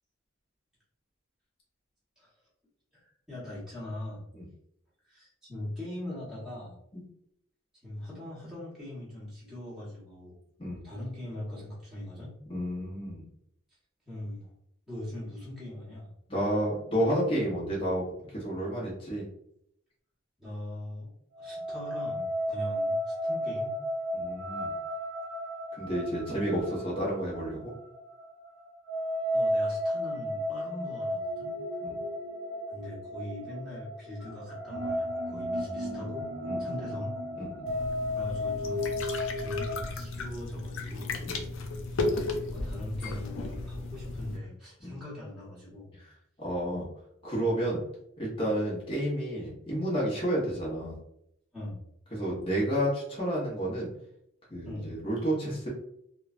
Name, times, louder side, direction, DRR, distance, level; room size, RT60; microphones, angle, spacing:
voice 1, 2.9-4.2 5.0-6.8 7.8-10.4 10.8-12.4 14.1-14.5 14.9-16.1 20.4-21.1 21.4-23.8 29.3-31.6 32.7-36.3 36.6-37.2 38.1-39.0 39.4-41.2 42.4-46.0 51.5-51.8 54.6-54.9, left 1 dB, ahead, -9 dB, 1.0 m, -41 dB
voice 2, 12.5-13.3 16.3-18.0 18.3-19.2 24.1-24.7 25.8-27.7 31.8-31.9 35.3-36.1 36.4-37.0 37.3-37.5 41.2-41.4 44.8-44.9 46.4-46.9 47.2-47.8 48.2-51.0 52.1-53.9 54.5-55.7, right 1 dB, 25° left, -6 dB, 0.8 m, -31 dB
sound 1, 21.4-39.8, equal, 75° right, 0.5 m, -33 dB
sound 2, 37.7-44.4, left 2 dB, 80° left, 0.4 m, -35 dB
3.0 x 2.1 x 2.4 m, 0.73 s
head